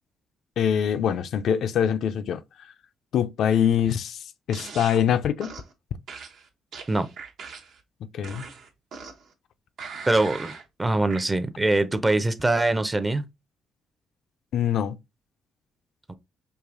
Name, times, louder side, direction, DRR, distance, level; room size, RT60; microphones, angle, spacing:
voice 1, 0.6-2.4 3.1-4.2 4.5-5.5 8.1-8.4 14.5-15.0, left 9 dB, 70° left, 0.3 m, -23 dB
sound 1, 4.5-5.0 5.4-5.7 6.1-7.8 8.2-9.3 9.8-10.7 11.1-11.3, right 5 dB, 70° right, 0.8 m, -40 dB
voice 2, 10.1-10.5 10.8-13.3, right 2 dB, 20° right, 0.5 m, -23 dB
4.7 x 2.7 x 2.5 m
cardioid pair, 90°, 0 cm